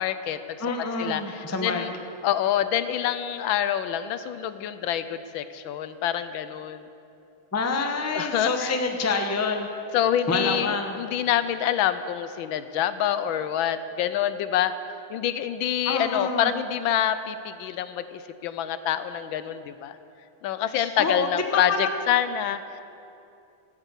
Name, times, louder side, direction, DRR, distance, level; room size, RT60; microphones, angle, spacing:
voice 1, 0.0-0.6 1.0-1.9 2.2-6.9 8.1-8.7 9.9-14.7 15.1-20.0 20.4-22.8, left 10 dB, 75° left, 12 dB, 1.3 m, -26 dB
voice 2, 0.6-1.8 7.5-9.7 10.3-11.0 15.8-16.5 20.7-21.9, left 3 dB, 20° left, 4 dB, 0.4 m, -27 dB
15.0 x 9.0 x 8.2 m, 2.7 s
omnidirectional pair, 2.3 m